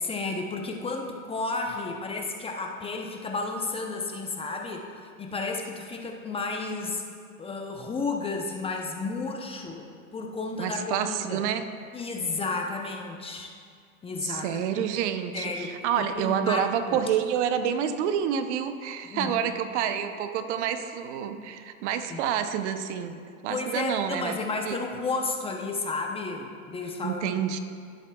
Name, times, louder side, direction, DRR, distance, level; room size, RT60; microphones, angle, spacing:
voice 1, 0.0-7.0 7.4-11.4 11.9-13.5 14.0-14.9 15.3-17.0 19.0-19.3 22.1-22.2 23.5-27.3, left 3 dB, 15° left, 2 dB, 0.7 m, -32 dB
voice 2, 10.6-11.7 14.2-24.4 24.7-24.8 27.0-27.6, right 8 dB, 55° right, 9 dB, 0.8 m, -28 dB
17.0 x 7.9 x 2.3 m, 2.2 s
hypercardioid pair, 115°, 43 cm